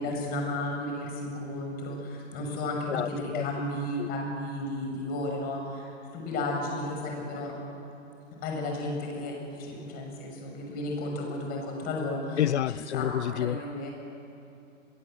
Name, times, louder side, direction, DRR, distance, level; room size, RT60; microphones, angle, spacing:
voice 1, 0.0-7.6 8.4-12.4 12.9-13.9, left 1 dB, 25° left, 6.4 m, -33 dB
voice 2, 2.9-3.5 4.0-4.1 12.4-13.6, left 10 dB, 60° left, 0.7 m, -29 dB
26.5 x 22.5 x 7.8 m
hypercardioid pair, 140°, 39 cm